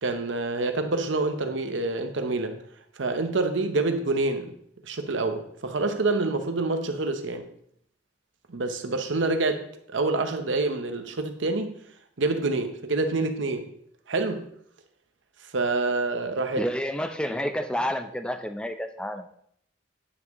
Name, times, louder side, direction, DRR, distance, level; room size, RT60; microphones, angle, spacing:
voice 1, 0.0-2.6 3.0-4.6 4.8-7.5 8.5-11.7 12.2-13.7 14.1-14.5 15.5-16.6, right 3 dB, 85° right, 0.8 m, -27 dB
voice 2, 16.6-19.4, equal, 5° left, 0.4 m, -30 dB
9.5 x 6.0 x 3.0 m
head